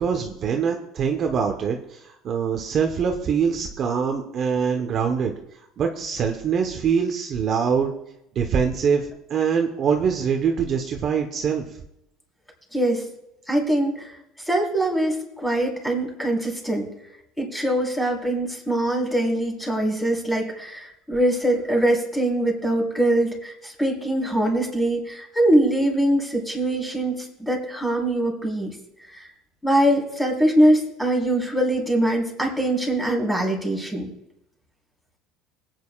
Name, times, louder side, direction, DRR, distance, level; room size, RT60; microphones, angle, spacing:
voice 1, 0.0-5.3 5.8-7.9 8.3-11.6, right 6 dB, 40° right, 3 dB, 1.1 m, -24 dB
voice 2, 12.7-13.0 13.5-14.1 14.5-16.9 17.4-28.8 29.6-34.1, right 1 dB, 5° left, -2 dB, 4.2 m, -23 dB
21.0 x 9.3 x 2.5 m, 0.84 s
supercardioid pair, 120°, 0 cm